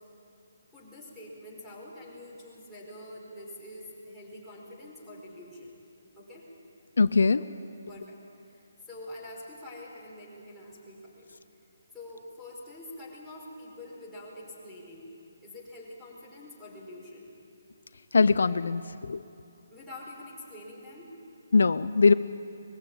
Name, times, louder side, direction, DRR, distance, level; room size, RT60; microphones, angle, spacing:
voice 1, 0.7-5.7 6.2-6.5 7.9-8.2 8.4-11.3 11.9-15.1 15.4-17.4 19.7-21.1, left 1 dB, ahead, -9 dB, 5.0 m, -46 dB
voice 2, 7.0-7.4 18.1-19.2 21.5-22.1, left 4 dB, 70° left, 14 dB, 0.5 m, -22 dB
21.0 x 15.0 x 8.8 m, 2.7 s
hypercardioid pair, 155°, 0 cm